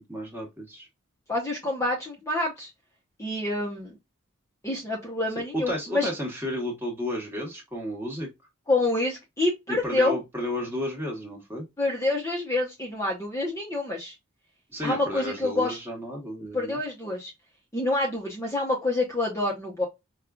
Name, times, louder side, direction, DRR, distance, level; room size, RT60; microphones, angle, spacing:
voice 1, 0.1-0.9 5.5-8.3 9.7-11.6 14.7-16.8, left 1 dB, 10° right, 1.2 m, -32 dB
voice 2, 1.3-2.7 3.2-3.9 4.6-6.1 8.7-10.2 11.8-14.1 14.8-15.8 16.5-17.3 17.7-19.9, left 2 dB, 15° left, 0.8 m, -27 dB
5.3 x 2.3 x 2.2 m
head